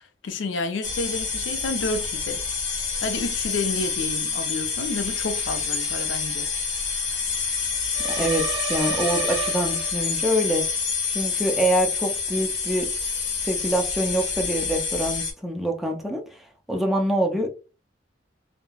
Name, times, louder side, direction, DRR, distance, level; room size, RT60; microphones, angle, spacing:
voice 1, 0.0-2.4 3.0-6.5, left 3 dB, 90° left, 0.4 m, -30 dB
sound 1, 0.8-15.3, left 5 dB, 75° left, 0.8 m, -27 dB
sound 2, 7.9-10.3, right 7 dB, 70° right, 0.4 m, -32 dB
voice 2, 8.0-10.7 11.1-12.9 13.4-17.5, right 1 dB, ahead, 0.4 m, -25 dB
3.1 x 2.0 x 2.2 m
head